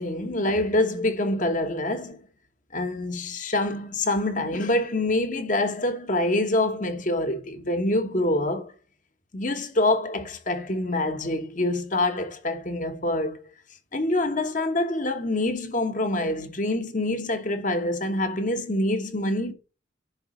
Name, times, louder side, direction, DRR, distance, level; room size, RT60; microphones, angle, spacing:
voice 1, 0.0-2.2 2.7-8.7 9.3-13.4 13.9-19.5, left 1 dB, 40° left, 1.1 m, -26 dB
10.5 x 3.9 x 5.1 m
head